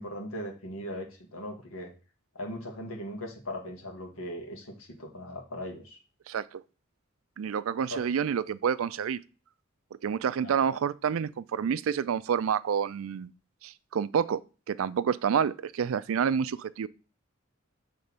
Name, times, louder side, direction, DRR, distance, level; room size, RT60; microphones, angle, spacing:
voice 1, 0.0-1.9 2.3-6.0 7.9-8.0 10.4-10.5, equal, 90° left, 1.8 m, -39 dB
voice 2, 6.3-6.6 7.4-9.2 10.0-13.3 13.6-14.4 14.7-16.9, right 7 dB, 75° right, 0.4 m, -28 dB
6.6 x 3.4 x 5.4 m
head